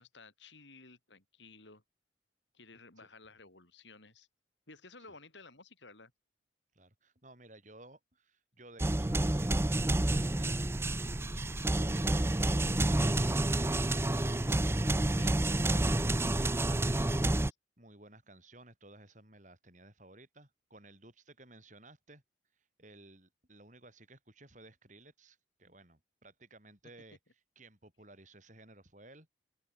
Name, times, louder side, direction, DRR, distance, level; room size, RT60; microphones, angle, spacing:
voice 1, 0.0-1.8 2.5-4.3 4.7-6.1 15.1-16.0 17.4-17.5, left 3 dB, 75° left, 5.0 m, -55 dB
voice 2, 6.7-10.7 11.3-14.6 16.3-16.8 17.8-22.2 22.5-29.3, right 2 dB, 40° right, 7.9 m, -56 dB
sound 1, 8.8-17.5, right 1 dB, 15° right, 0.5 m, -29 dB
open air
head